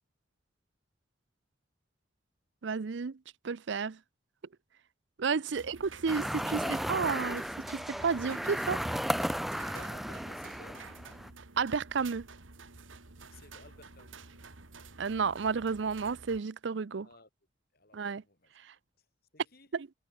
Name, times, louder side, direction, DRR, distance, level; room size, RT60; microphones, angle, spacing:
voice 1, 2.6-3.2 3.4-4.0 5.2-6.6 6.9-7.4 7.7-8.8 11.6-12.3 15.0-17.1 17.9-18.2 18.6-18.7 19.7-19.9, right 5 dB, 65° right, 0.5 m, -31 dB
voice 2, 5.3-6.1 9.7-11.1 13.3-14.4 17.0-17.3 17.7-18.5 19.0-19.1 19.3-19.7, left 2 dB, 50° left, 5.3 m, -56 dB
sound 1, 5.5-16.4, right 4 dB, 85° right, 2.1 m, -51 dB
sound 2, 6.1-11.3, equal, ahead, 0.3 m, -35 dB
head